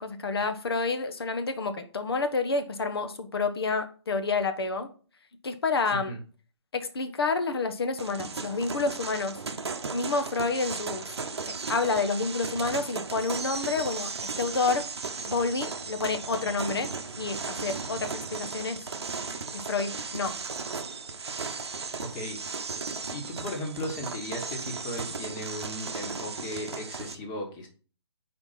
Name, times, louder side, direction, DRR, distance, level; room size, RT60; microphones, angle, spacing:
voice 1, 0.0-4.9 5.4-6.1 6.7-9.4 9.9-11.0 11.5-14.1 14.4-14.8 15.3-16.9 17.2-18.8 19.5-20.3, left 4 dB, 55° left, 8 dB, 0.9 m, -29 dB
sound 1, 8.0-27.2, right 4 dB, 65° right, 0.8 m, -36 dB
voice 2, 22.0-22.4 23.1-27.7, left 1 dB, 20° left, 2 dB, 1.3 m, -36 dB
4.5 x 4.3 x 5.5 m, 0.38 s
figure-of-eight pair, 140°, 15 cm